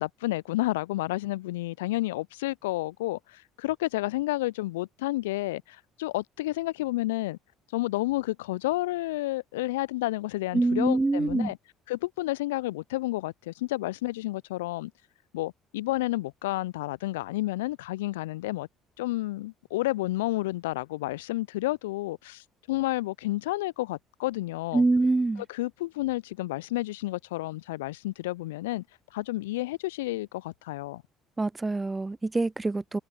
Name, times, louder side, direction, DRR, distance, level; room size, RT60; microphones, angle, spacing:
voice 1, 0.0-7.4 7.7-11.6 11.9-14.9 15.3-18.7 19.0-24.8 25.5-28.8 29.1-31.0, left 18 dB, 75° left, 0.6 m, -30 dB
voice 2, 10.5-11.5 24.7-25.4 31.4-33.0, right 3 dB, 15° right, 0.4 m, -25 dB
figure-of-eight pair, 55°, 0 cm